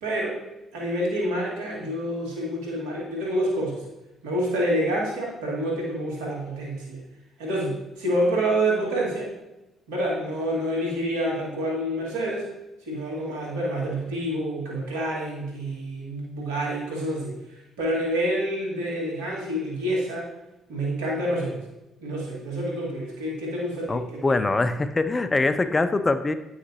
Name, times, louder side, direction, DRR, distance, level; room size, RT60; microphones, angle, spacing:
voice 1, 0.0-0.4 0.7-3.8 4.2-7.0 7.4-9.3 9.9-12.5 12.9-20.3 20.7-21.6 22.0-24.0, right 1 dB, 85° right, -4 dB, 2.2 m, -27 dB
voice 2, 23.9-26.3, left 3 dB, 25° left, 11 dB, 0.6 m, -23 dB
9.3 x 5.8 x 3.0 m, 0.97 s
hypercardioid pair, 55°, 0 cm